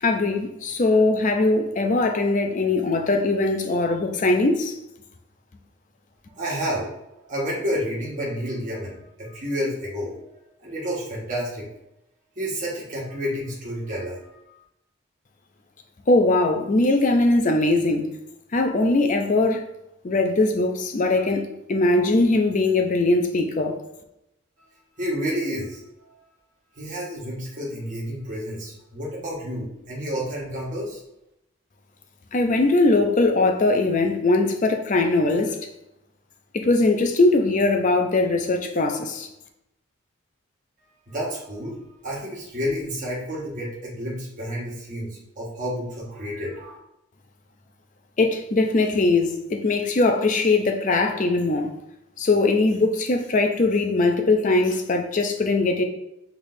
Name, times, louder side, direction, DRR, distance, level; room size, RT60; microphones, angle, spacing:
voice 1, 0.0-4.7 16.1-18.1 18.5-19.6 20.0-21.4 21.7-23.8 32.3-35.6 36.5-39.3 48.2-51.7 52.2-55.8, left 2 dB, 35° left, 4 dB, 0.5 m, -21 dB
voice 2, 6.4-6.9 7.2-10.2 10.6-11.7 12.4-14.2 25.0-26.2 26.8-31.0 41.1-41.8 42.0-46.8, equal, 35° right, -5 dB, 1.4 m, -30 dB
6.0 x 3.3 x 2.6 m, 0.86 s
head